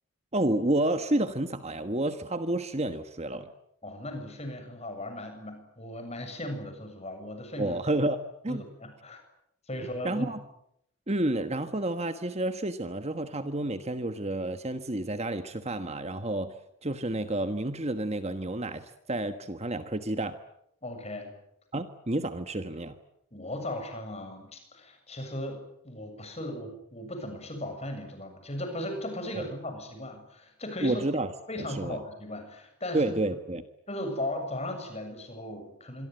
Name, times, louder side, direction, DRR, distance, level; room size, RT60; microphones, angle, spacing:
voice 1, 0.3-3.5 7.6-8.6 10.0-10.4 11.1-16.5 16.8-20.4 21.7-23.0 29.3-29.4 30.8-31.3 31.6-32.0 32.9-33.6, right 1 dB, 30° right, 9 dB, 1.3 m, -30 dB
voice 2, 3.8-7.8 8.5-9.2 9.7-10.3 20.8-21.3 23.3-31.0 31.5-33.1 33.9-36.1, left 1 dB, 30° left, 6 dB, 7.3 m, -37 dB
26.5 x 23.0 x 9.2 m, 0.77 s
head